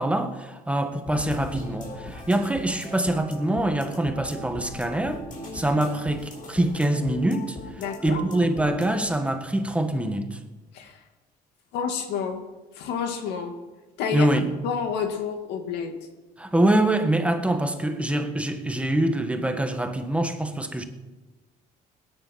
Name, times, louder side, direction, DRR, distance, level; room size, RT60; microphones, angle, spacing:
voice 1, 0.0-5.2 5.5-10.4 14.1-14.5 16.4-20.8, right 1 dB, 5° right, 1.5 m, -24 dB
sound 1, 1.1-9.1, left 2 dB, 55° left, 4.8 m, -39 dB
voice 2, 7.8-8.2 10.7-11.0 11.7-12.4 12.8-13.5 14.0-14.3 14.6-15.9, left 6 dB, 90° left, 2.2 m, -29 dB
19.5 x 10.5 x 5.9 m
cardioid pair, 110°, 17 cm